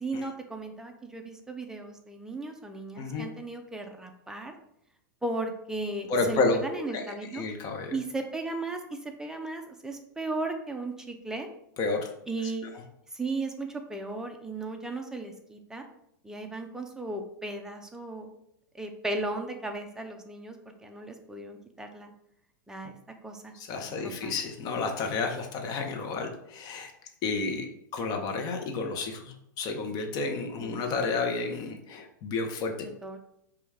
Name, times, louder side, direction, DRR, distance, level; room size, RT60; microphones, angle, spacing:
voice 1, 0.0-4.6 5.2-7.4 7.9-11.5 12.3-12.7 13.1-15.8 16.2-18.4 18.7-20.6 20.8-22.1 22.7-23.0 23.2-23.5 23.8-24.3 30.6-30.8 32.8-33.2, right 2 dB, 5° right, 4 dB, 0.5 m, -36 dB
voice 2, 3.0-3.3 6.1-6.6 6.9-8.0 11.8-12.1 12.6-12.7 23.5-26.9 27.2-27.7 27.9-32.7, left 3 dB, 35° left, 4 dB, 0.7 m, -31 dB
5.2 x 2.3 x 3.5 m, 0.77 s
hypercardioid pair, 130°, 11 cm